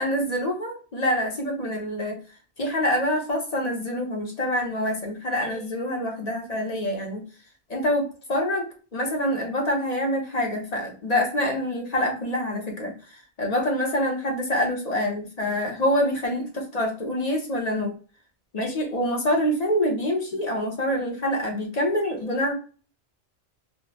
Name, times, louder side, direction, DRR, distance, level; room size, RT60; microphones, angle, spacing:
voice 1, 0.0-2.2 2.6-7.2 7.7-12.9 13.4-17.9 18.5-22.5, left 1 dB, 40° left, 1 dB, 0.9 m, -26 dB
3.5 x 2.0 x 2.9 m, 0.38 s
omnidirectional pair, 1.1 m